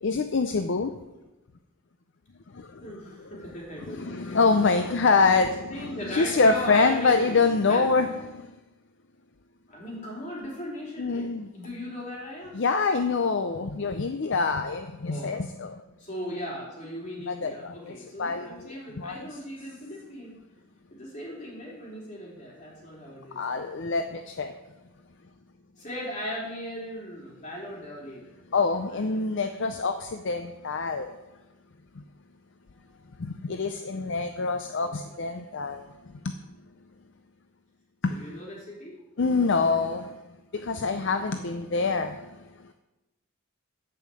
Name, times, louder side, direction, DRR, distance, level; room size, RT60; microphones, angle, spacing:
voice 1, 0.0-1.0 2.5-3.3 3.9-8.5 11.0-11.5 12.5-15.8 17.3-19.3 23.3-24.5 28.5-31.2 32.0-32.1 33.2-36.3 38.0-38.3 39.2-40.2 40.5-42.5, left 4 dB, 55° left, 8 dB, 0.5 m, -26 dB
voice 2, 2.8-4.5 5.7-7.8 9.7-12.5 15.1-15.4 16.0-20.4 20.9-23.4 25.8-28.3 28.9-29.2 32.7-32.9 34.8-34.9 38.1-38.9, equal, 35° left, -4 dB, 3.5 m, -38 dB
10.5 x 5.6 x 7.6 m, 1.0 s
head